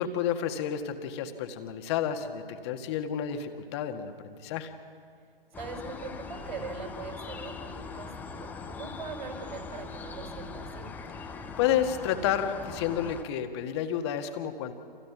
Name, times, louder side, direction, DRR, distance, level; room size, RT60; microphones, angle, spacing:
voice 1, 0.0-4.7 11.6-14.7, left 9 dB, 25° left, 7 dB, 1.8 m, -30 dB
sound 1, 5.5-13.2, left 4 dB, 5° left, 0.9 m, -41 dB
voice 2, 5.6-8.4 8.6-10.9, right 4 dB, 55° right, 3 dB, 6.1 m, -41 dB
29.5 x 27.5 x 6.1 m, 2.2 s
figure-of-eight pair, 125°, 29 cm